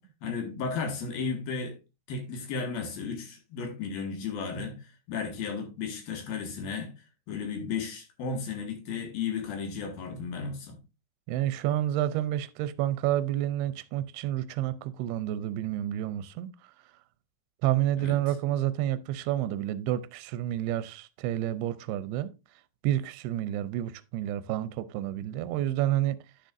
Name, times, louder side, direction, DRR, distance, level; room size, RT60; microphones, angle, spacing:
voice 1, 0.2-1.8 2.1-6.9 7.3-10.8 18.0-18.2, left 5 dB, 70° left, 3.4 m, -34 dB
voice 2, 11.3-16.5 17.6-22.3 22.8-26.2, right 13 dB, 85° right, 2.5 m, -29 dB
10.0 x 6.4 x 2.5 m
omnidirectional pair, 4.5 m